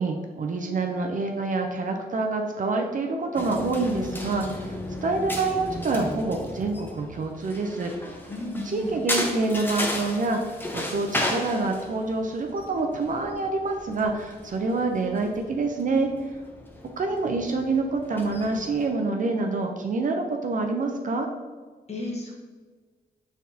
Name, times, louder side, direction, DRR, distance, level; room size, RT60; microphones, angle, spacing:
voice 1, 0.0-7.9 8.6-16.1 17.0-21.3, right 3 dB, 50° right, 3 dB, 0.5 m, -27 dB
sound 1, 3.4-18.9, left 1 dB, 10° left, 0.7 m, -35 dB
voice 2, 8.3-9.0 21.9-22.3, left 1 dB, 40° left, -2 dB, 1.3 m, -33 dB
4.3 x 3.5 x 2.7 m, 1.5 s
cardioid pair, 60°, 17 cm